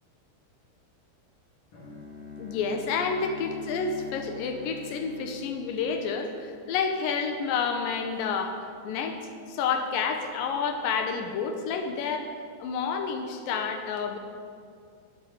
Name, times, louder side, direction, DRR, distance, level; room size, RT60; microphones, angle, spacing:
Bowed string instrument, 1.7-6.7, left 3 dB, 65° left, 1.4 m, -43 dB
voice 1, 2.4-8.6 8.8-9.2 9.5-12.3 12.6-14.2, left 5 dB, 80° left, 5 dB, 2.0 m, -29 dB
8.8 x 7.9 x 9.2 m, 2.2 s
omnidirectional pair, 4.9 m